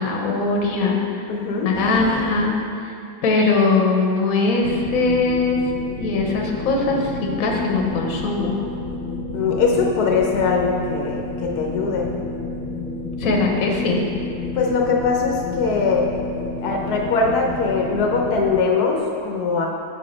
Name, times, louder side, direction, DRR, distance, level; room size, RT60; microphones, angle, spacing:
voice 1, 0.0-1.2 1.6-2.5 3.2-5.6 6.0-8.6 13.2-14.0, left 3 dB, 65° left, 0 dB, 1.3 m, -21 dB
voice 2, 1.3-1.7 9.3-12.1 14.5-16.1 16.6-19.7, left 4 dB, 85° left, 0 dB, 1.3 m, -21 dB
sound 1, 1.7-2.5 4.6-18.6, left 2 dB, 5° right, 1.5 m, -30 dB
6.3 x 6.2 x 4.3 m, 2.4 s
omnidirectional pair, 1.6 m